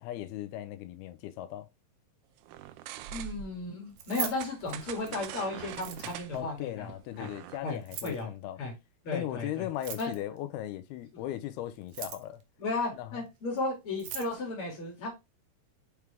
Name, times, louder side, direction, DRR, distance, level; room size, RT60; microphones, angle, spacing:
voice 1, 0.0-1.7 6.3-8.6 9.1-12.4 12.9-13.2, left 12 dB, 85° left, 2.6 m, -38 dB
sound 1, 2.4-3.7 4.4-7.6, right 11 dB, 90° right, 2.6 m, -43 dB
voice 2, 3.1-6.9 7.2-7.3 7.6-8.3 8.6-8.7 9.0-9.7 10.0-10.1 12.6-15.1, left 2 dB, 40° left, 3.1 m, -34 dB
Keys jangling, 3.9-5.3 5.7-6.4 7.7-8.2 9.7-10.4 11.7-12.4 13.6-13.7 13.9-14.3, right 8 dB, 70° right, 2.2 m, -40 dB
7.2 x 4.7 x 3.4 m
omnidirectional pair, 4.5 m